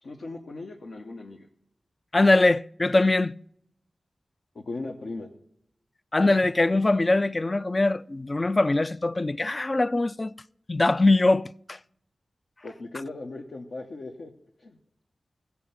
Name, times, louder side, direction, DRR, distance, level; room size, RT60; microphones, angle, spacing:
voice 1, 0.0-1.5 4.5-5.3 12.6-14.3 14.6-14.8, left 2 dB, 75° left, 1.0 m, -38 dB
voice 2, 2.1-3.4 6.1-10.3 10.7-11.8, left 2 dB, 35° left, 0.3 m, -22 dB
16.0 x 5.6 x 5.8 m
cardioid pair, 55°, 0 cm